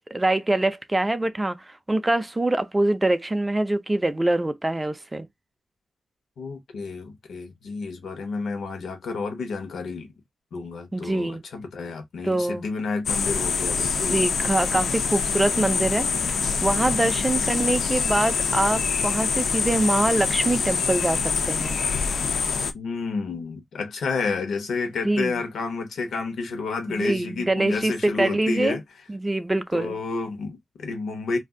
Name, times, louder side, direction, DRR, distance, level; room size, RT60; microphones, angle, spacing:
voice 1, 0.1-5.3 10.9-11.4 12.2-12.7 14.1-21.8 25.0-25.4 26.9-28.8 29.1-30.0, right 2 dB, 10° right, 0.3 m, -24 dB
voice 2, 6.4-10.1 10.5-14.2 22.7-28.8 29.7-31.4, left 4 dB, 80° left, 0.9 m, -30 dB
sound 1, 13.1-22.7, left 5 dB, 65° left, 0.4 m, -25 dB
2.6 x 2.4 x 3.5 m
wide cardioid pair, 180°, 0 cm